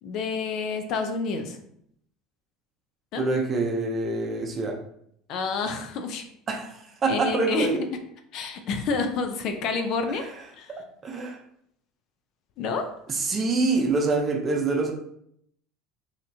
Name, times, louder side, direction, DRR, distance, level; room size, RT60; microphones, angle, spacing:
voice 1, 0.0-1.6 3.1-3.2 5.3-6.2 7.1-7.7 8.3-10.3 10.6-10.7 12.6-12.9, left 4 dB, 50° left, 6 dB, 0.6 m, -28 dB
voice 2, 3.2-4.8 6.5-7.8 10.2-10.3 10.7-11.4 13.1-14.9, right 3 dB, 25° right, 2 dB, 0.7 m, -26 dB
5.6 x 2.9 x 2.8 m, 0.71 s
cardioid pair, 145°, 0 cm